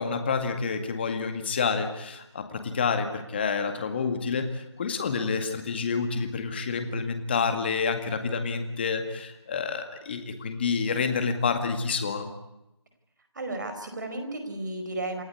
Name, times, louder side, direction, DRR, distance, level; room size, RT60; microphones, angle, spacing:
voice 1, 0.0-12.3, left 5 dB, 20° left, 8 dB, 2.0 m, -28 dB
voice 2, 13.3-15.2, right 2 dB, 40° right, 7 dB, 4.9 m, -33 dB
29.0 x 14.5 x 9.7 m, 0.91 s
figure-of-eight pair, 165°, 15 cm